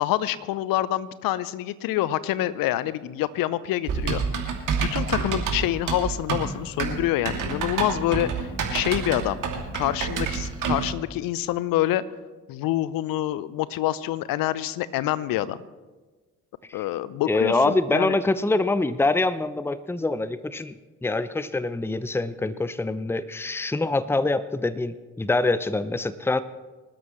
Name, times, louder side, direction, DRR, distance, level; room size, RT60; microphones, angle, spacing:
voice 1, 0.0-4.4 4.8-9.4 9.7-12.0 12.5-15.6 16.7-18.2, left 14 dB, 65° left, 18 dB, 0.8 m, -26 dB
Typing, 3.9-10.9, right 5 dB, 55° right, 2.6 m, -28 dB
voice 2, 17.3-20.7 21.0-26.4, left 2 dB, 5° left, 15 dB, 0.7 m, -25 dB
25.5 x 13.0 x 3.2 m, 1.3 s
hypercardioid pair, 45°, 37 cm